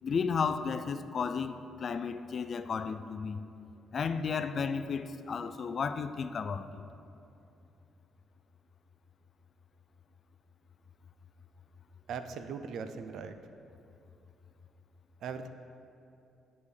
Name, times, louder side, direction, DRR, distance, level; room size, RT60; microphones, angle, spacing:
voice 1, 0.0-3.4 3.9-6.8, left 5 dB, 50° left, 11 dB, 0.3 m, -33 dB
voice 2, 12.1-13.4 15.2-15.5, right 6 dB, 70° right, 9 dB, 0.4 m, -39 dB
9.6 x 4.9 x 3.3 m, 2.7 s
cardioid pair, 90°, 0 cm